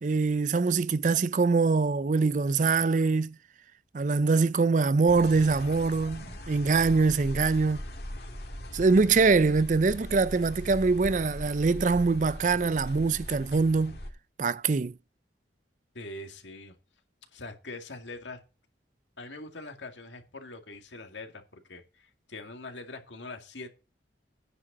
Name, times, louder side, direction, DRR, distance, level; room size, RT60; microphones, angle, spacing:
voice 1, 0.0-3.3 3.9-7.8 8.7-14.0 14.4-14.9, right 4 dB, 45° right, 0.4 m, -24 dB
sound 1, 5.1-14.1, left 1 dB, 60° left, 2.3 m, -40 dB
voice 2, 15.9-16.8 17.3-18.4 19.2-23.7, left 2 dB, 90° left, 2.1 m, -43 dB
9.7 x 5.0 x 7.3 m
head